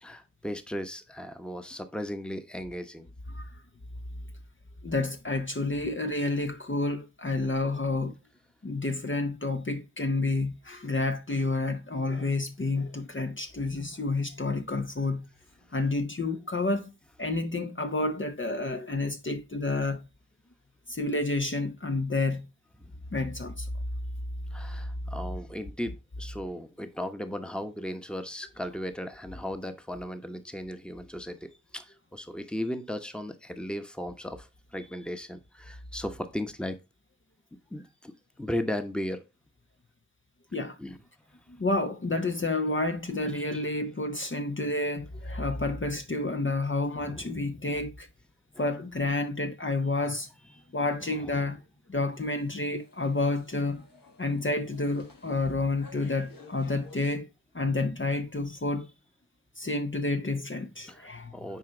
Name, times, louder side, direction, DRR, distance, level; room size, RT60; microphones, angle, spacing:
voice 1, 0.0-3.1 24.5-31.4 31.7-34.5 34.7-36.8 37.7-38.1 38.4-39.2 40.8-41.0 43.3-43.6 47.0-47.4 60.9-61.6, left 1 dB, 5° left, 1.1 m, -36 dB
voice 2, 4.8-8.1 8.6-15.3 15.7-16.9 17.2-20.0 20.9-22.5 23.1-23.7 40.5-40.8 41.6-48.1 48.6-50.3 50.7-51.6 51.9-53.8 54.2-57.3 57.5-58.9 59.6-61.3, left 2 dB, 35° left, 0.9 m, -29 dB
sound 1, 52.1-57.2, left 3 dB, 80° left, 1.5 m, -54 dB
9.3 x 4.4 x 3.9 m
wide cardioid pair, 50°, 33 cm